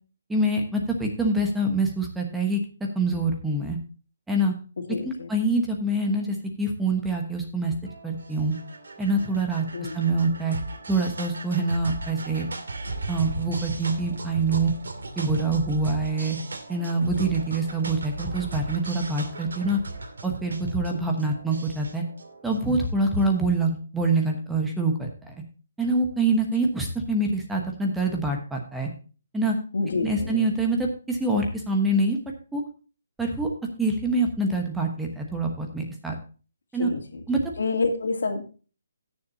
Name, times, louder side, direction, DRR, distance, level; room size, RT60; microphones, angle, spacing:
voice 1, 0.3-2.6 2.9-3.8 4.3-4.5 5.0-7.7 8.0-8.5 9.0-9.6 9.9-10.6 10.9-12.5 13.1-14.7 15.2-16.4 16.7-19.8 20.2-22.0 22.4-25.1 25.8-28.9 29.3-29.6 30.0-32.2 32.5-32.6 33.2-33.5 33.8-36.2 36.7-36.9 37.3-37.4, right 2 dB, 5° right, 1 dB, 1.1 m, -25 dB
voice 2, 4.9-5.3 9.7-10.1 17.2-17.3 29.7-30.5 36.8-37.2 37.6-38.4, left 3 dB, 75° left, 4 dB, 2.4 m, -28 dB
sound 1, 7.8-23.4, right 2 dB, 90° right, 2.4 m, -37 dB
17.5 x 7.0 x 2.7 m, 0.36 s
hypercardioid pair, 170°, 0 cm